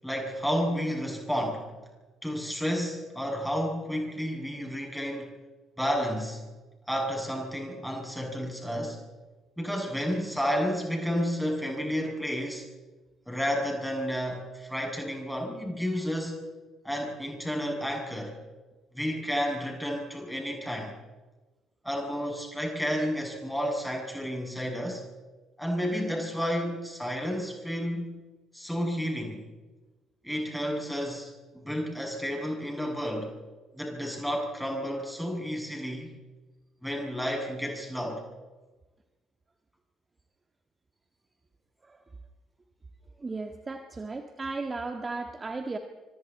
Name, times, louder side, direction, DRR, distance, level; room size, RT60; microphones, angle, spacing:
voice 1, 0.0-1.7 2.2-5.3 5.8-6.4 6.9-9.0 9.6-12.6 13.3-16.5 16.8-18.4 18.9-20.9 21.8-25.0 25.6-28.2 28.5-29.4 30.2-33.3 33.7-36.1 36.8-38.2, equal, ahead, 1 dB, 7.8 m, -31 dB
voice 2, 43.2-45.8, right 3 dB, 25° right, 6 dB, 1.8 m, -35 dB
26.5 x 25.5 x 4.3 m, 1.2 s
figure-of-eight pair, 45°, 0 cm